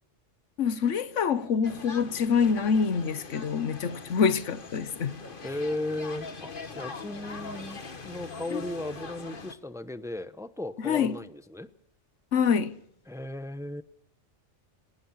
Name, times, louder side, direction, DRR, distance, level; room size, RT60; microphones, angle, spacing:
voice 1, 0.6-5.1 8.5-8.6 10.8-11.1 12.3-12.7, left 6 dB, 90° left, 1.4 m, -26 dB
sound 1, 1.6-9.5, left 4 dB, 45° left, 1.7 m, -42 dB
voice 2, 5.4-11.7 13.1-13.8, left 1 dB, 5° right, 0.8 m, -36 dB
28.5 x 12.0 x 8.7 m
omnidirectional pair, 1.2 m